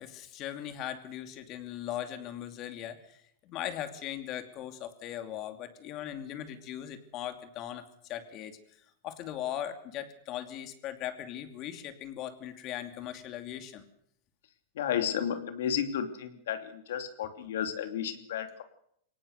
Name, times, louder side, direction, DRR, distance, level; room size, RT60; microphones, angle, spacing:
voice 1, 0.0-8.6 9.0-13.8, left 11 dB, 35° left, 8 dB, 2.7 m, -39 dB
voice 2, 14.8-18.6, left 9 dB, 80° left, 8 dB, 3.0 m, -32 dB
23.0 x 18.0 x 6.7 m, 0.70 s
supercardioid pair, 150°, 0 cm